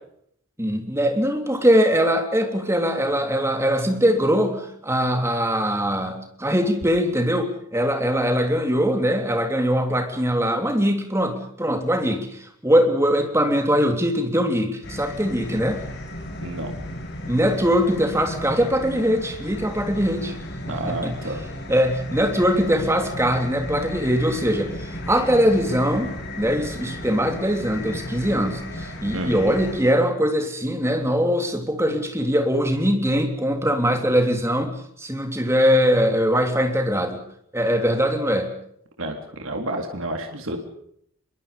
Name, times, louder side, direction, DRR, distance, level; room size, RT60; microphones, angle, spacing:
voice 1, 0.6-15.8 17.3-20.4 20.7-21.1 21.7-34.7 35.0-37.2 37.5-38.5, equal, 10° right, 4 dB, 3.3 m, -22 dB
sound 1, 14.8-29.8, left 1 dB, 50° left, 6.1 m, -35 dB
voice 2, 16.4-16.7 20.7-21.4 29.1-29.3 39.0-40.6, right 1 dB, 65° right, 3 dB, 3.7 m, -30 dB
25.5 x 23.0 x 5.3 m, 0.69 s
head